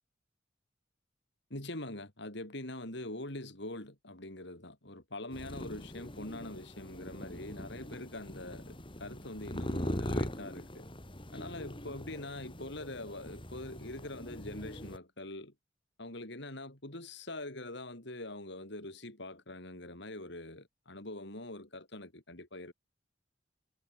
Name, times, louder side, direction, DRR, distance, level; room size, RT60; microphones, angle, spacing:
voice 1, 1.5-10.9 11.3-15.5 16.0-22.7, left 1 dB, 65° left, 5.5 m, -43 dB
sound 1, 5.3-15.0, equal, 25° left, 5.3 m, -41 dB
head